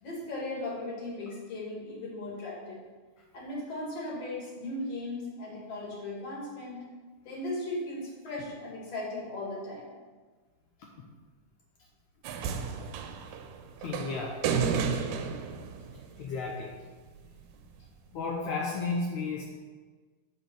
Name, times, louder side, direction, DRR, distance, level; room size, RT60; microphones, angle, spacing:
voice 1, 0.0-2.8 3.3-6.8 7.2-9.9, left 2 dB, 50° left, -4 dB, 3.0 m, -37 dB
sound 1, 12.2-16.6 17.7-17.8, right 6 dB, 85° right, 2.3 m, -32 dB
voice 2, 13.8-14.4 16.2-16.8 17.2-17.3 17.8-17.9 18.1-19.5, left 4 dB, 70° left, -2 dB, 2.1 m, -33 dB
8.3 x 4.2 x 6.8 m, 1.4 s
omnidirectional pair, 3.8 m